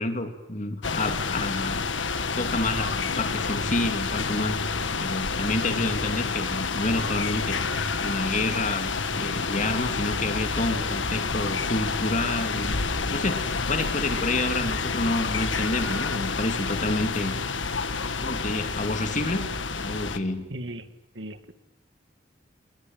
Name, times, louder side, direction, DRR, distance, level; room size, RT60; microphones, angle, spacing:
voice 1, 0.0-1.8 2.4-12.8 13.1-17.3 18.2-19.5 19.8-20.5, left 2 dB, 40° left, 6 dB, 2.9 m, -29 dB
sound 1, 0.8-20.2, left 4 dB, 85° left, 1.7 m, -29 dB
voice 2, 20.5-20.9 21.1-21.5, right 1 dB, 75° right, 10 dB, 2.1 m, -37 dB
29.0 x 21.5 x 9.2 m, 0.96 s
head